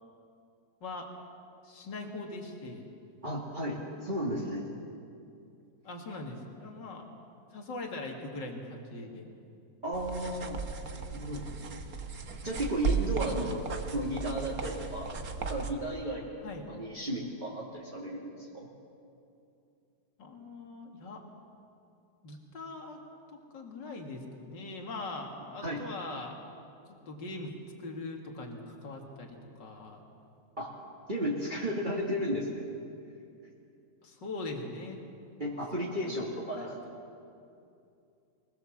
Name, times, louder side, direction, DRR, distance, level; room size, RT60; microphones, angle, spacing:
voice 1, 1.6-2.9 5.8-7.0 7.5-9.3 13.1-13.3 16.4-16.7 20.2-21.2 22.2-23.0 23.3-26.4 27.1-27.5 27.8-30.0 34.0-35.0 35.8-36.1 36.6-36.8, left 2 dB, 75° left, 1 dB, 2.8 m, -41 dB
voice 2, 3.2-4.6 9.8-10.6 10.9-11.5 12.4-13.6 13.9-15.1 15.4-16.4 16.7-18.7 25.6-25.8 30.6-30.7 31.1-32.7 35.4-36.6, equal, 25° right, -5 dB, 2.5 m, -34 dB
sound 1, 9.9-15.7, right 5 dB, 55° right, 1.7 m, -35 dB
25.0 x 19.0 x 7.3 m, 2.6 s
omnidirectional pair, 1.9 m